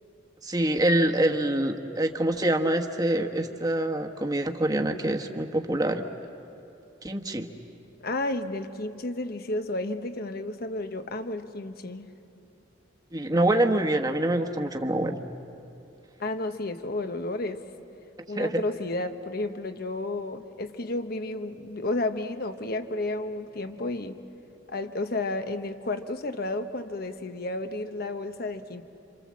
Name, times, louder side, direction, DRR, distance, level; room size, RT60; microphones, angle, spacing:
voice 1, 0.4-6.0 7.0-7.5 13.1-15.2 18.4-18.6, right 1 dB, 20° right, 4 dB, 1.3 m, -25 dB
voice 2, 8.0-12.1 16.2-17.6 18.3-24.2 24.7-28.8, left 2 dB, 50° left, 8 dB, 1.1 m, -32 dB
27.5 x 27.0 x 7.5 m, 2.8 s
head